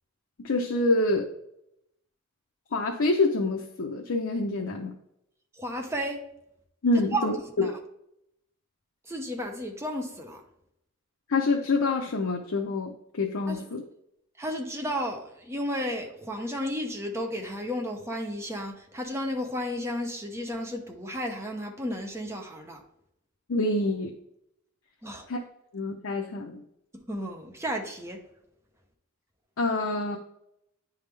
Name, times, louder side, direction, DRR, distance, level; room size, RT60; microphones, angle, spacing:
voice 1, 0.4-1.3 2.7-4.9 6.8-7.7 11.3-13.8 23.5-24.1 25.3-25.4 25.7-26.6 29.6-30.2, left 2 dB, 65° left, 0 dB, 0.6 m, -26 dB
voice 2, 5.6-6.2 7.1-7.3 7.6-7.8 9.1-10.4 13.5-13.6 14.4-22.8 25.0-25.3 26.9-28.2, equal, 15° right, 2 dB, 0.8 m, -33 dB
9.6 x 3.5 x 3.3 m, 0.80 s
head